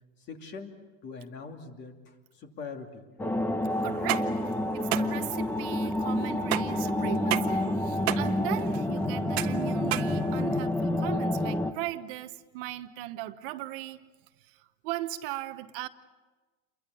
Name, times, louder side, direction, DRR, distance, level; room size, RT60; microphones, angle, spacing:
voice 1, 0.3-3.0, left 5 dB, 35° left, 2.7 m, -42 dB
sound 1, 3.2-11.7, left 1 dB, 5° left, 1.0 m, -28 dB
voice 2, 3.8-14.0 14.4-15.9, right 15 dB, 55° right, 1.1 m, -38 dB
sound 2, 3.9-10.8, right 15 dB, 75° right, 1.4 m, -34 dB
29.0 x 23.0 x 7.0 m
supercardioid pair, 145°, 32 cm